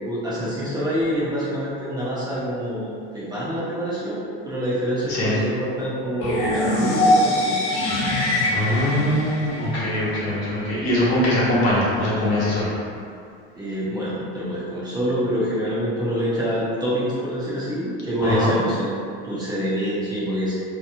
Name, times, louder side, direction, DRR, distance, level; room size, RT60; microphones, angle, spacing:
voice 1, 0.0-7.6 13.5-18.9 19.2-20.5, equal, 15° right, -10 dB, 0.5 m, -26 dB
sound 1, 6.2-10.2, left 1 dB, 85° left, 0.9 m, -22 dB
voice 2, 8.5-12.7 18.2-18.5, left 1 dB, 55° left, -7 dB, 1.1 m, -22 dB
2.8 x 2.5 x 2.6 m, 2.4 s
supercardioid pair, 125°, 30 cm